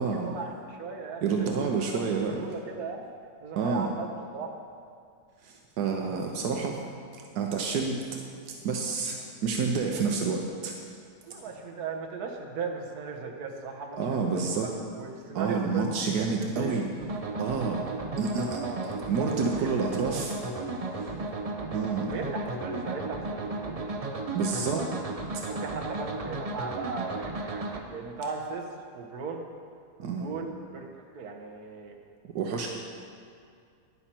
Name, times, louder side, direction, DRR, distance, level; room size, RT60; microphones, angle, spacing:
voice 1, 0.0-1.7 2.4-3.1 3.4-4.5 11.2-14.0 14.3-14.4 14.9-16.3 16.5-16.8 18.3-19.3 19.5-19.7 21.0-21.4 22.1-24.9 25.5-28.6 28.9-29.4 30.0-31.9, right 5 dB, 70° right, 1 dB, 1.6 m, -37 dB
voice 2, 1.2-2.4 3.5-3.9 5.4-6.8 7.3-8.0 8.5-10.8 13.9-14.7 15.3-16.9 17.4-17.8 18.2-20.4 20.9-21.1 21.7-22.1 24.3-24.8 30.0-30.3 32.3-32.7, right 5 dB, 85° right, 1 dB, 1.4 m, -29 dB
sound 1, 17.0-27.8, right 2 dB, 40° right, 0.5 m, -34 dB
11.5 x 10.0 x 4.4 m, 2.3 s
omnidirectional pair, 1.7 m